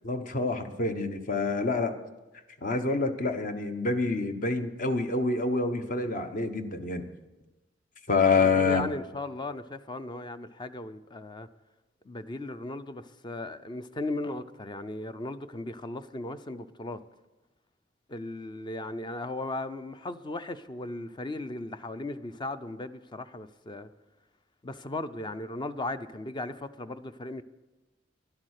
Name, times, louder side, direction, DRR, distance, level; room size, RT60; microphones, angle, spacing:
voice 1, 0.0-1.9 2.6-7.0 8.1-8.8, left 3 dB, 45° left, 1.1 m, -27 dB
voice 2, 8.3-11.5 12.1-17.0 18.1-23.9 24.6-27.4, left 2 dB, 25° left, 0.5 m, -37 dB
11.5 x 11.5 x 6.5 m
head